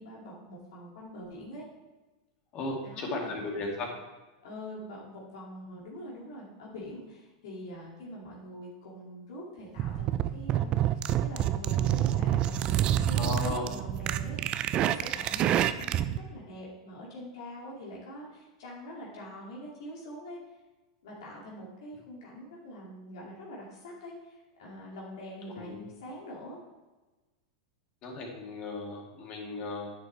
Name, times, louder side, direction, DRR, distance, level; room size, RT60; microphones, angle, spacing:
voice 1, 0.0-1.6 2.8-3.3 4.4-20.4 21.0-26.6, equal, 70° left, -5 dB, 2.5 m, -44 dB
voice 2, 2.5-3.9 13.1-13.7 25.6-25.7 28.0-29.9, left 2 dB, 40° left, 0 dB, 2.3 m, -35 dB
sound 1, 9.8-16.2, right 11 dB, 40° right, 0.4 m, -27 dB
9.9 x 7.1 x 3.4 m, 1.2 s
hypercardioid pair, 115°, 3 cm